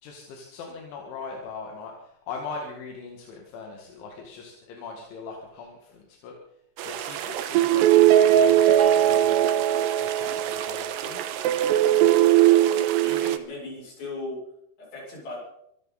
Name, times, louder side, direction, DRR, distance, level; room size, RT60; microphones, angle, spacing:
voice 1, 0.0-6.3 6.8-9.5 10.0-11.2, left 4 dB, 85° left, 1 dB, 4.5 m, -40 dB
sound 1, 6.8-13.4, right 11 dB, 75° right, 2.8 m, -20 dB
sound 2, 8.8-11.0, right 16 dB, 45° right, 3.6 m, -33 dB
voice 2, 12.4-14.4 14.8-15.4, left 2 dB, 65° left, -4 dB, 9.3 m, -38 dB
24.5 x 13.5 x 4.2 m, 0.77 s
omnidirectional pair, 5.3 m